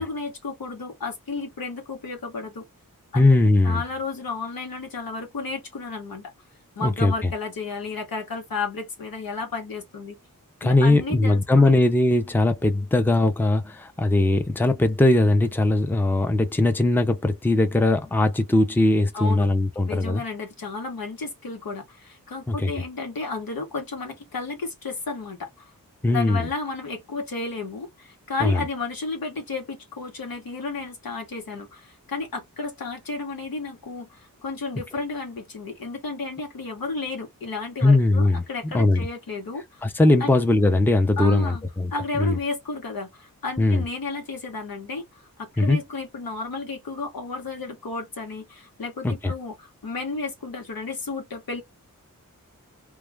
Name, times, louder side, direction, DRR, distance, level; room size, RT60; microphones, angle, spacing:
voice 1, 0.0-2.6 3.1-3.3 3.6-6.3 6.8-10.2 10.6-11.8 19.1-19.5 19.9-25.7 26.1-39.6 40.2-40.3 41.2-41.6 41.9-51.6, left 3 dB, 90° left, 1.0 m, -32 dB
voice 2, 3.1-3.8 6.8-7.3 10.6-20.2 22.5-22.7 26.0-26.5 28.4-28.6 37.8-39.1 39.8-41.9 42.2-42.4 43.6-43.8 45.6-45.8 49.0-49.3, left 2 dB, 5° left, 0.5 m, -20 dB
2.3 x 2.2 x 3.2 m
wide cardioid pair, 85°, 34 cm